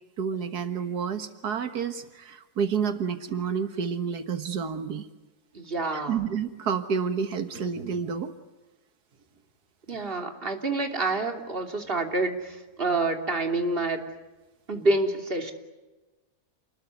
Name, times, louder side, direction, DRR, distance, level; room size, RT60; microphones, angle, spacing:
voice 1, 0.2-5.1 5.9-8.3 9.9-10.0, right 6 dB, 90° right, 9 dB, 2.0 m, -29 dB
voice 2, 5.5-6.2 9.9-14.0 14.7-15.5, right 2 dB, 35° right, 4 dB, 3.2 m, -27 dB
29.0 x 21.0 x 9.6 m, 1.1 s
omnidirectional pair, 1.6 m